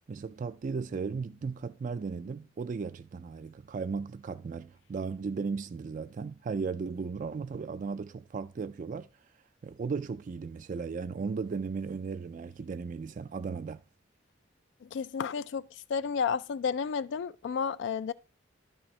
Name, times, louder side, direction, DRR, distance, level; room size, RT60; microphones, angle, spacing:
voice 1, 0.1-9.1 9.6-13.8, right 5 dB, 40° right, 0.3 m, -36 dB
voice 2, 14.8-15.6 15.9-18.1, left 6 dB, 65° left, 0.3 m, -31 dB
11.5 x 6.1 x 3.2 m
head